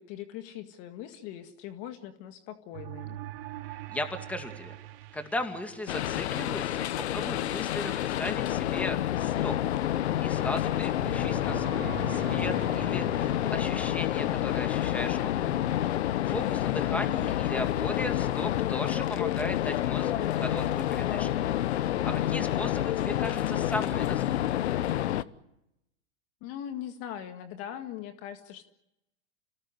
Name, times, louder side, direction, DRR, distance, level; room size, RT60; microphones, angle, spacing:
voice 1, 0.0-3.2 16.4-16.7 22.2-22.5 26.4-28.6, left 10 dB, 40° left, 8 dB, 2.0 m, -41 dB
sound 1, 2.7-6.4 11.0-15.1, right 13 dB, 50° right, 4.0 m, -43 dB
voice 2, 3.9-4.8 5.1-9.6 10.2-15.5 16.2-21.5 22.0-24.4, left 1 dB, 5° left, 6 dB, 2.3 m, -37 dB
sound 2, 5.9-25.2, left 12 dB, 70° left, 1.1 m, -28 dB
28.5 x 18.5 x 9.7 m, 0.86 s
hypercardioid pair, 130°, 35 cm